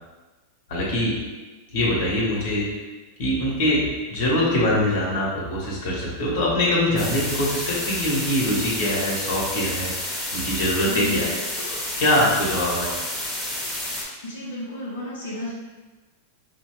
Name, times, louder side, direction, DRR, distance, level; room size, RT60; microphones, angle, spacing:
voice 1, 0.7-1.2 1.7-2.7 3.2-11.3 11.7-12.9, left 1 dB, 70° left, -5 dB, 1.3 m, -23 dB
sound 1, 7.0-14.0, left 1 dB, 15° left, 1.0 m, -30 dB
voice 2, 10.9-11.3 14.2-15.5, left 1 dB, 85° left, -5 dB, 0.7 m, -32 dB
4.9 x 2.2 x 3.1 m, 1.2 s
supercardioid pair, 130°, 0 cm